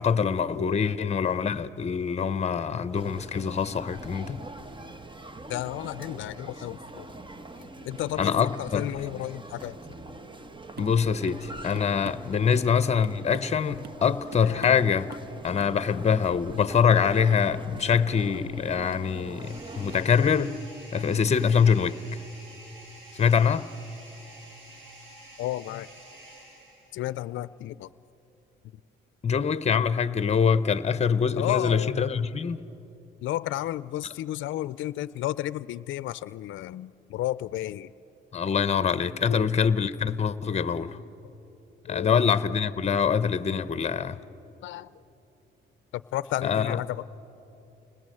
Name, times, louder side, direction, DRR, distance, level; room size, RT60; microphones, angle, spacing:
voice 1, 0.0-4.4 8.2-8.9 10.8-15.1 15.4-20.6 20.9-22.0 23.2-23.7 29.2-32.6 38.3-41.0 41.9-44.2 46.4-46.8, left 6 dB, 35° left, 0.9 m, -24 dB
voice 2, 0.6-0.9 5.5-7.1 7.6-9.8 12.4-12.7 14.4-14.8 25.4-25.9 26.9-27.9 31.4-32.1 33.2-37.9 39.2-39.4 41.9-42.2 44.6-44.9 45.9-47.0, left 14 dB, 75° left, 0.5 m, -33 dB
sound 1, 2.9-20.1, right 2 dB, 25° right, 1.1 m, -43 dB
sound 2, 10.8-11.0 11.3-11.5 11.8-12.7 13.0-13.6 13.8-14.1 14.3-14.9 15.1-15.3 15.6-15.8, right 5 dB, 55° right, 1.1 m, -44 dB
sound 3, 19.4-27.1, right 2 dB, 80° right, 6.9 m, -49 dB
30.0 x 20.0 x 7.8 m
cardioid pair, 90°, 20 cm